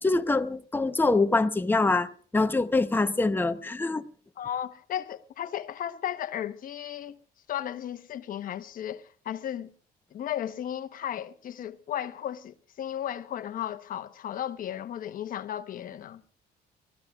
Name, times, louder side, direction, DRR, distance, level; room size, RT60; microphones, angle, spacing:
voice 1, 0.0-4.0, left 3 dB, 10° left, 0.9 m, -25 dB
voice 2, 4.4-7.2 7.5-9.7 10.1-16.4, left 10 dB, 55° left, 1.0 m, -35 dB
30.0 x 14.5 x 2.4 m
cardioid pair, 110°, 17 cm